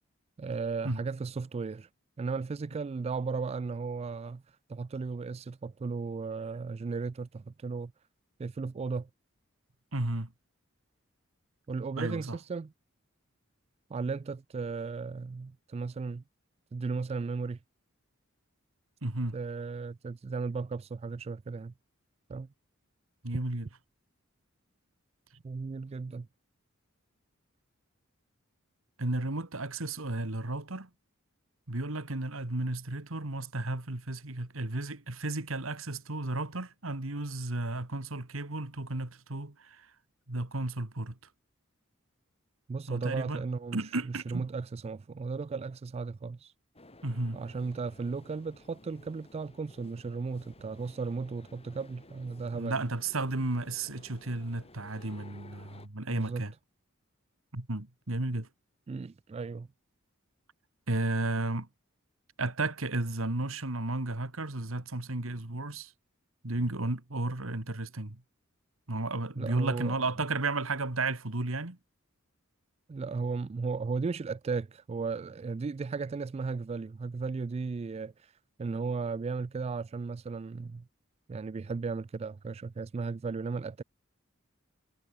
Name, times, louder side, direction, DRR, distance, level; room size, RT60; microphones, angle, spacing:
voice 1, 0.4-1.9 2.2-7.9 8.4-9.1 11.7-12.7 13.9-16.2 16.7-17.6 19.3-21.7 22.3-22.5 25.4-26.3 42.7-46.5 47.3-52.9 56.1-56.4 58.9-59.7 69.4-70.0 72.9-78.3 78.6-80.9 81.3-83.8, right 4 dB, 30° right, 0.3 m, -35 dB
voice 2, 9.9-10.3 12.0-12.4 19.0-19.4 23.2-23.7 29.0-30.9 31.7-39.9 40.3-41.2 42.9-43.4 43.7-44.5 47.0-47.4 52.5-56.5 57.5-58.5 60.9-61.7 62.4-65.9 66.4-68.2 68.9-71.8, right 2 dB, 75° right, 2.2 m, -33 dB
sound 1, 46.7-55.9, left 2 dB, 30° left, 5.4 m, -55 dB
head